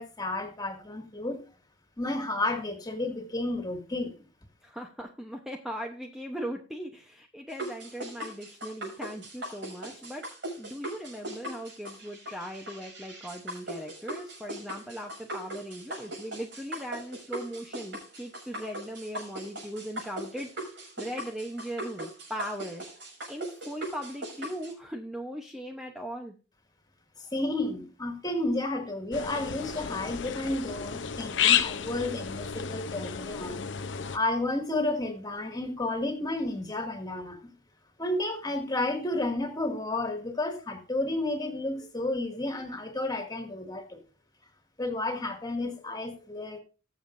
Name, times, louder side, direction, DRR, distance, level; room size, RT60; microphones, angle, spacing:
voice 1, 0.0-1.4 2.0-4.1 27.2-33.6 34.1-37.4 38.0-44.0 44.8-46.6, left 2 dB, 20° left, 4 dB, 2.1 m, -31 dB
voice 2, 4.6-10.2 10.6-22.8 23.3-26.4, equal, 5° right, 2 dB, 0.8 m, -39 dB
sound 1, 7.5-24.7, right 1 dB, 65° right, 6.5 m, -40 dB
sound 2, 29.1-34.2, left 8 dB, 70° left, 0.7 m, -31 dB
20.5 x 7.2 x 2.6 m, 0.34 s
head